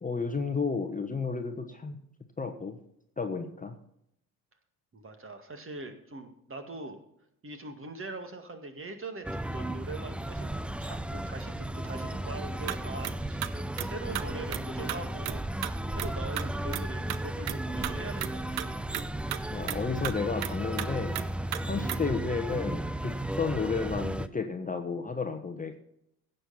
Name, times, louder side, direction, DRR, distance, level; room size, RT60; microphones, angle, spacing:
voice 1, 0.0-2.0 2.4-2.8 3.2-3.7 19.5-21.2 21.7-25.8, left 4 dB, 20° left, 6 dB, 1.2 m, -32 dB
voice 2, 4.9-7.0 7.4-10.5 10.8-18.7, right 2 dB, 30° right, 6 dB, 2.1 m, -42 dB
sound 1, 9.2-24.3, right 1 dB, 5° right, 0.4 m, -34 dB
sound 2, 12.7-12.8 13.0-13.1 13.4-13.9 14.1-14.2 14.5-14.6 14.9-15.0 15.2-15.4 15.6-15.7 16.0-16.1 16.4-16.8 17.1-17.2 17.5-17.6 17.8-17.9 18.2-18.3 18.6-18.7 18.9-19.0 19.3-19.4 19.7-19.8 20.0-20.1 20.4-20.5 20.8-20.9 21.1-21.3 21.5-21.6 21.9-22.0, right 15 dB, 55° right, 0.8 m, -33 dB
16.5 x 6.8 x 4.2 m, 0.75 s
hypercardioid pair, 55°, 45 cm